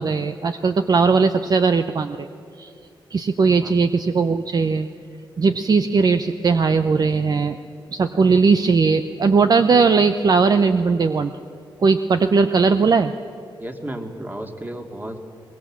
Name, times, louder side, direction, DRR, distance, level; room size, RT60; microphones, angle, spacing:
voice 1, 0.0-2.3 2.6-2.7 3.1-4.9 5.4-7.6 7.9-11.3 11.8-13.1, right 4 dB, 45° right, 9 dB, 0.7 m, -18 dB
voice 2, 13.6-15.2, right 1 dB, 20° right, 4 dB, 2.3 m, -33 dB
22.5 x 20.5 x 7.4 m, 2.4 s
cardioid pair, 85°, 9 cm